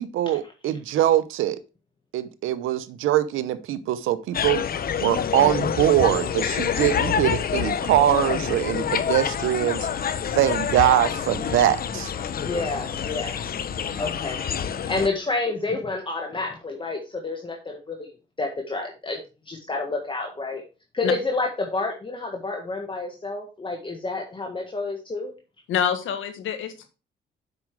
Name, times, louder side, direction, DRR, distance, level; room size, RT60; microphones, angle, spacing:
voice 1, 0.0-1.6 2.1-4.7 5.0-9.9 10.3-12.1, right 12 dB, 85° right, 0.8 m, -22 dB
sound 1, 4.3-15.1, left 8 dB, 50° left, 0.8 m, -27 dB
voice 2, 12.4-13.4 14.0-18.1 18.4-19.2 19.5-20.6 20.9-25.3, left 3 dB, 25° left, 1.7 m, -29 dB
voice 3, 25.7-26.9, left 8 dB, 80° left, 1.6 m, -26 dB
7.9 x 6.1 x 4.7 m
cardioid pair, 90°, 20 cm